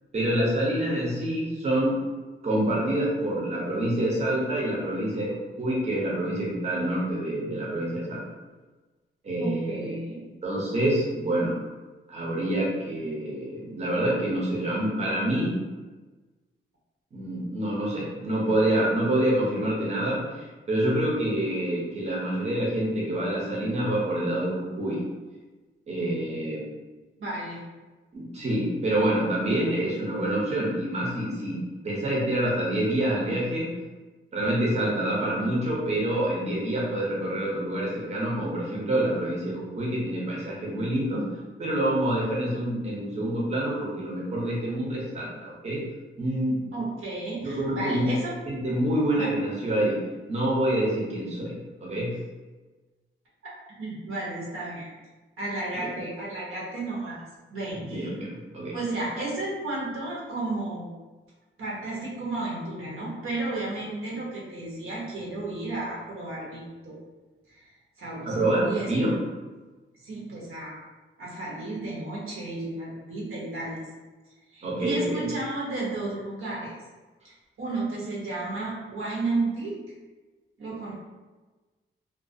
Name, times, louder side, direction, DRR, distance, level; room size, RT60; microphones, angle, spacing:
voice 1, 0.1-2.0 2.4-8.2 9.2-9.9 10.4-11.5 12.1-15.6 17.1-25.0 25.9-26.6 28.1-33.7 34.3-41.2 41.6-45.8 46.2-46.6 47.4-48.1 48.5-50.0 50.3-51.5 51.8-52.1 55.7-55.9 57.7-58.8 68.3-69.2 74.6-75.3, right 1 dB, 30° right, -5 dB, 0.6 m, -27 dB
voice 2, 9.4-10.2 27.2-27.6 46.7-48.3 49.2-49.3 53.4-53.5 53.8-54.9 55.4-57.2 57.5-58.1 58.7-60.9 61.6-67.0 67.5-67.7 68.0-68.9 70.0-70.8 71.2-73.8 74.5-76.7 77.2-79.8 80.6-80.9, right 2 dB, 85° right, -5 dB, 0.8 m, -33 dB
2.3 x 2.1 x 2.5 m, 1.2 s
wide cardioid pair, 155°, 21 cm